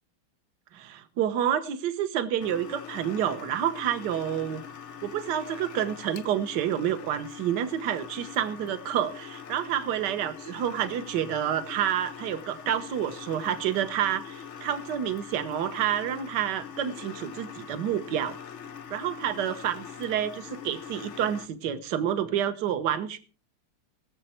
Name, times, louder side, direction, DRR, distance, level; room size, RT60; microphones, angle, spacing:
voice 1, 0.7-4.6 5.0-18.4 18.9-23.2, right 10 dB, 55° right, 1.5 m, -29 dB
sound 1, 2.4-21.5, left 7 dB, 65° left, 0.7 m, -43 dB
21.0 x 7.6 x 4.4 m
omnidirectional pair, 2.4 m